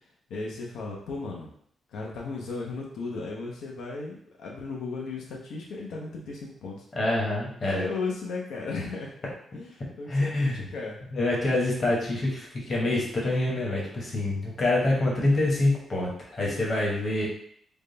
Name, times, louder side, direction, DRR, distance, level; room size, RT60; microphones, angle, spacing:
voice 1, 0.3-1.5 1.9-6.8 7.6-9.1 9.5-11.0, left 3 dB, 85° left, -2 dB, 0.7 m, -35 dB
voice 2, 6.9-7.8 10.1-10.7 11.1-17.3, left 2 dB, 35° left, -4 dB, 1.0 m, -26 dB
3.5 x 2.2 x 3.9 m, 0.66 s
wide cardioid pair, 160°, 0 cm